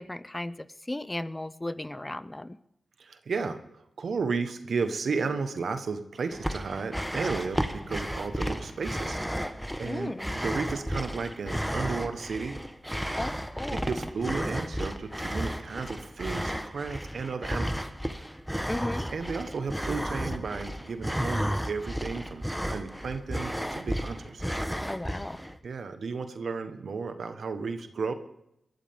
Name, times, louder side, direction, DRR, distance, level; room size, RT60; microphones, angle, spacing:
voice 1, 0.0-2.6 9.8-10.4 13.2-13.9 18.7-19.1 24.8-25.4, left 1 dB, 20° left, 16 dB, 0.7 m, -35 dB
voice 2, 3.0-3.6 4.0-9.2 9.8-12.6 13.7-17.8 19.1-24.4 25.6-28.1, right 4 dB, 75° right, 8 dB, 1.4 m, -33 dB
sound 1, 6.3-25.6, equal, ahead, 1.2 m, -33 dB
22.5 x 13.5 x 3.7 m, 0.82 s
cardioid pair, 55°, 0 cm